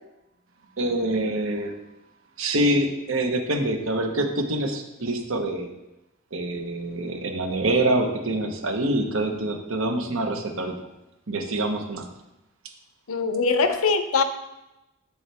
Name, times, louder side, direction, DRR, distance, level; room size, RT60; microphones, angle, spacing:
voice 1, 0.8-1.7 2.4-5.7 6.3-10.8 11.3-12.1, right 1 dB, 70° right, 4 dB, 1.1 m, -25 dB
voice 2, 13.1-14.2, left 4 dB, 90° left, 9 dB, 0.7 m, -22 dB
8.0 x 7.1 x 3.4 m, 0.95 s
head